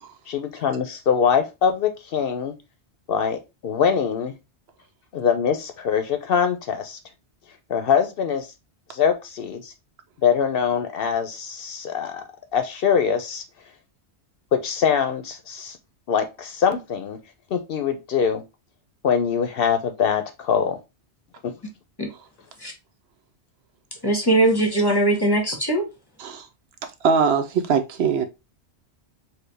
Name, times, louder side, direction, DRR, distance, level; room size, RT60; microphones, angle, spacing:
voice 1, 0.3-2.5 3.1-4.3 5.1-7.0 7.7-8.5 8.9-9.7 10.2-12.2 12.5-13.4 14.5-15.8 16.1-17.2 17.5-18.4 19.0-20.8 21.4-21.5, left 7 dB, 65° left, 0.7 m, -23 dB
voice 2, 24.0-25.8, right 1 dB, 25° left, 0.8 m, -20 dB
voice 3, 27.0-28.2, right 6 dB, 70° right, 0.8 m, -21 dB
4.3 x 2.2 x 3.1 m
omnidirectional pair, 1.1 m